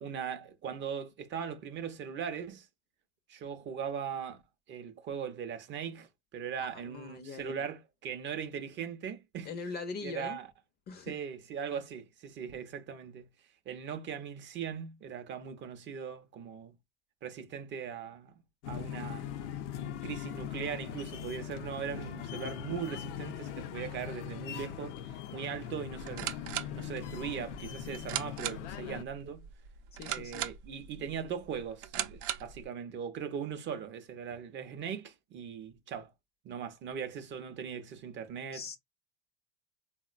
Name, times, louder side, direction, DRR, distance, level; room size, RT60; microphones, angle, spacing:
voice 1, 0.0-2.7 3.3-4.4 4.7-9.5 10.0-10.5 11.1-13.3 13.7-16.8 17.2-19.4 20.0-26.3 26.8-29.4 30.1-36.1 36.4-38.8, right 7 dB, 35° right, 0.5 m, -39 dB
voice 2, 6.6-7.7 9.4-10.4 10.9-11.2 30.0-30.5 38.5-38.8, left 4 dB, 30° left, 0.4 m, -41 dB
sound 1, 18.6-29.0, left 9 dB, 80° left, 0.6 m, -40 dB
sound 2, 25.9-32.7, right 11 dB, 85° right, 0.6 m, -40 dB
3.7 x 2.1 x 2.4 m
supercardioid pair, 115°, 35 cm